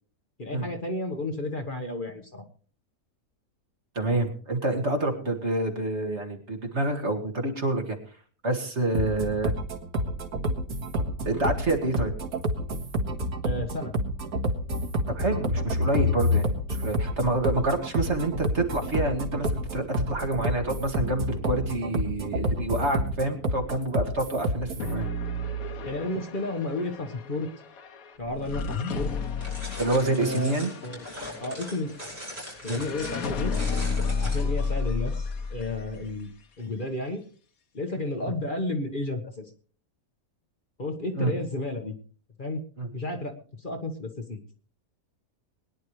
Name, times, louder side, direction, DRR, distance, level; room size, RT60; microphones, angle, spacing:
voice 1, 0.4-2.4 13.4-13.9 25.8-27.5 28.2-29.1 30.1-30.5 30.8-31.0 31.4-31.9 32.6-33.5 34.2-36.3 36.6-37.2 37.7-39.5 40.8-41.9 42.4-42.6 42.9-43.3 43.6-44.4, left 2 dB, 35° left, 4 dB, 1.5 m, -32 dB
voice 2, 4.0-8.0 8.4-9.5 11.2-12.1 15.1-25.1 29.8-30.7 32.6-32.8 41.2-41.3 42.8-42.9, right 2 dB, 50° right, 4 dB, 2.2 m, -27 dB
sound 1, 8.9-24.9, equal, 75° right, 2.1 m, -29 dB
sound 2, 24.8-36.1, left 4 dB, 70° left, 1.5 m, -32 dB
sound 3, 29.4-34.7, equal, 25° right, 6.5 m, -40 dB
21.5 x 10.5 x 3.2 m, 0.40 s
omnidirectional pair, 1.6 m